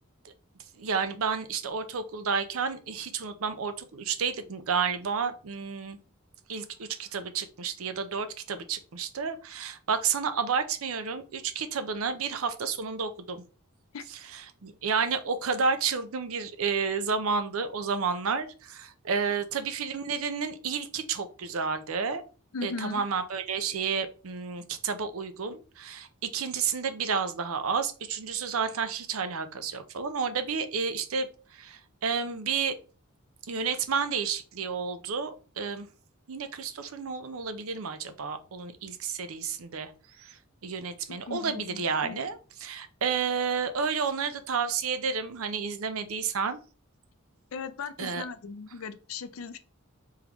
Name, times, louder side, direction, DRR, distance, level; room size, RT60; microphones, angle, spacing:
voice 1, 0.8-6.0 6.5-13.4 14.3-22.2 22.6-31.3 31.5-32.8 33.5-35.9 36.3-39.9 40.2-40.4 40.6-46.6 48.0-48.2, right 5 dB, 75° right, 10 dB, 0.6 m, -31 dB
voice 2, 22.5-23.0 41.1-42.2 47.5-49.6, left 4 dB, 70° left, 12 dB, 0.5 m, -38 dB
3.6 x 3.4 x 3.0 m, 0.36 s
head